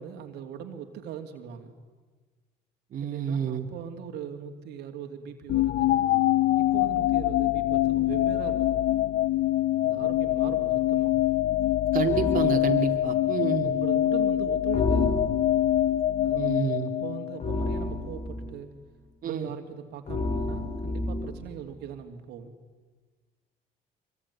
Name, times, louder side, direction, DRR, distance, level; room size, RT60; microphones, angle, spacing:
voice 1, 0.0-1.7 3.0-6.1 6.6-8.8 9.8-11.2 13.6-15.2 16.2-18.7 19.2-22.5, right 8 dB, 80° right, 5 dB, 2.8 m, -40 dB
voice 2, 2.9-3.7 11.9-13.7 16.3-16.9 19.2-19.5, right 7 dB, 55° right, 3 dB, 2.6 m, -29 dB
sound 1, 5.5-17.6, left 14 dB, 70° left, 0.8 m, -24 dB
sound 2, 12.1-12.5 14.7-15.7 17.4-18.5 20.1-21.4, left 2 dB, 40° left, 5.2 m, -30 dB
25.0 x 24.0 x 9.9 m, 1.4 s
cardioid pair, 110°, 17 cm